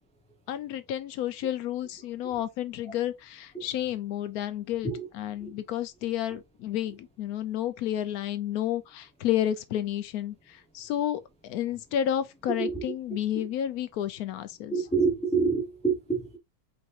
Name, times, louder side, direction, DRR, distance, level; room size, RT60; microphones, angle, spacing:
voice 1, 0.5-4.9 5.1-14.7, left 11 dB, 90° left, 1.1 m, -31 dB
voice 2, 14.7-16.4, right 4 dB, 5° left, 0.7 m, -27 dB
4.7 x 4.1 x 2.5 m
omnidirectional pair, 1.5 m